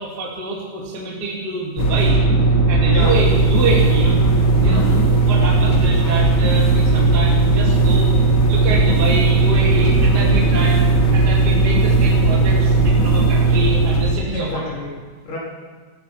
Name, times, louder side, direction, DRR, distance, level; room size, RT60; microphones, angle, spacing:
voice 1, 0.0-2.2 2.7-4.1 4.6-8.1 8.5-10.8 11.1-14.6, right 2 dB, 30° right, -4 dB, 2.7 m, -26 dB
sound 1, 1.8-14.2, right 3 dB, 45° left, 2.0 m, -16 dB
voice 2, 4.0-4.4 4.7-5.0 14.3-15.0 15.3-15.4, equal, 60° left, -5 dB, 5.5 m, -28 dB
Motorcycle, 8.3-11.6, equal, 50° right, 6.3 m, -35 dB
15.5 x 15.0 x 5.9 m, 1.5 s
omnidirectional pair, 4.2 m